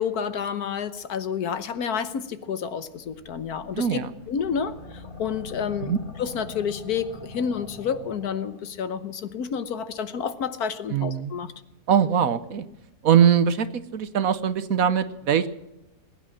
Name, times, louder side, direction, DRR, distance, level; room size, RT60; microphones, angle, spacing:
voice 1, 0.0-4.0 4.3-11.5, left 7 dB, 65° left, 12 dB, 1.4 m, -29 dB
sound 1, 3.0-8.6, left 3 dB, 30° left, 2.1 m, -43 dB
voice 2, 3.8-4.1 5.8-6.0 10.9-11.3 11.9-12.6 13.0-15.5, right 8 dB, 60° right, 13 dB, 1.2 m, -21 dB
20.5 x 9.3 x 7.5 m, 0.93 s
omnidirectional pair, 1.8 m